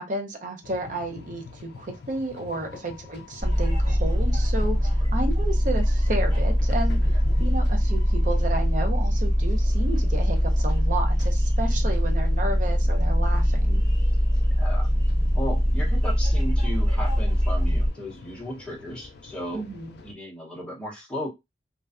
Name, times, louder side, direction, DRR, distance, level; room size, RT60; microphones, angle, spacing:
voice 1, 0.0-7.0 7.4-13.8 19.5-20.0, right 2 dB, 45° right, 0.6 m, -32 dB
sound 1, 0.6-20.1, left 4 dB, 60° left, 0.3 m, -45 dB
sound 2, 3.4-17.9, equal, 20° right, 1.0 m, -22 dB
voice 2, 14.6-14.9 15.3-19.7 20.0-21.3, equal, 5° left, 0.7 m, -35 dB
2.4 x 2.2 x 2.4 m
head